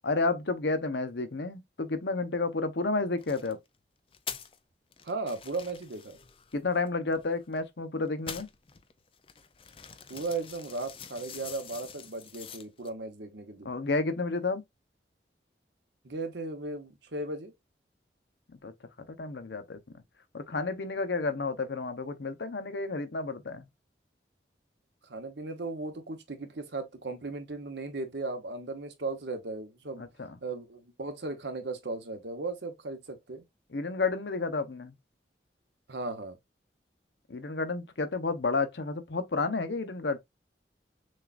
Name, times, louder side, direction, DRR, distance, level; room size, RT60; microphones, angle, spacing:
voice 1, 0.0-3.6 6.5-8.5 13.6-14.6 18.6-18.7 19.2-19.8 20.3-23.7 30.0-30.4 33.7-34.9 37.3-40.2, left 3 dB, 80° left, 0.8 m, -31 dB
sound 1, 3.2-3.5 4.1-4.6 4.9-7.7 8.1-12.9, left 7 dB, 30° left, 0.4 m, -45 dB
voice 2, 5.0-6.2 10.1-13.7 16.0-17.5 25.0-30.0 30.4-33.4 35.9-36.4, right 3 dB, 80° right, 1.0 m, -36 dB
6.4 x 2.4 x 2.4 m
head